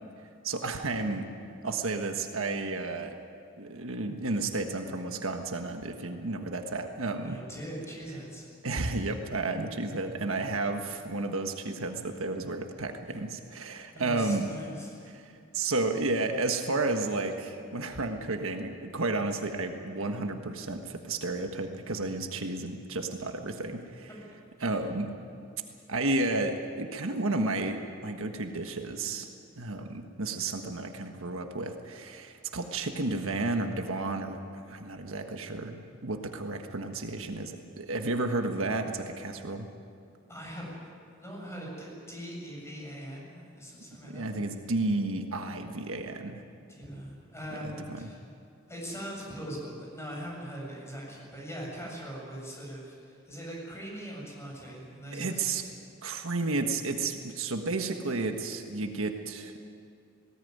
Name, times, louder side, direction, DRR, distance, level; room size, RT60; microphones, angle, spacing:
voice 1, 0.4-1.2 1.6-3.2 3.6-7.4 8.6-14.5 15.1-24.1 24.6-25.1 25.9-27.8 28.0-29.3 29.6-34.4 34.7-39.7 44.1-46.4 47.5-48.1 55.1-55.6 56.0-59.6, right 2 dB, 70° right, 5 dB, 1.5 m, -32 dB
voice 2, 7.2-8.5 13.9-15.0 24.2-24.3 24.6-24.8 40.3-44.3 46.7-48.2 48.7-55.6, equal, 15° left, -3 dB, 7.3 m, -41 dB
20.0 x 17.5 x 9.5 m, 2.4 s
head